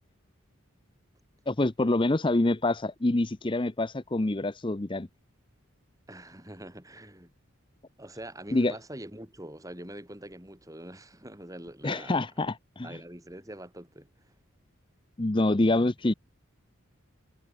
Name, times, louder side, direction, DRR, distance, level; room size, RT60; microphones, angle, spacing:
voice 1, 1.5-5.1 8.5-8.8 11.8-13.0 15.2-16.1, left 2 dB, 25° left, 0.6 m, -26 dB
voice 2, 6.1-7.3 8.0-12.3 12.8-14.3, right 1 dB, 15° right, 5.1 m, -44 dB
head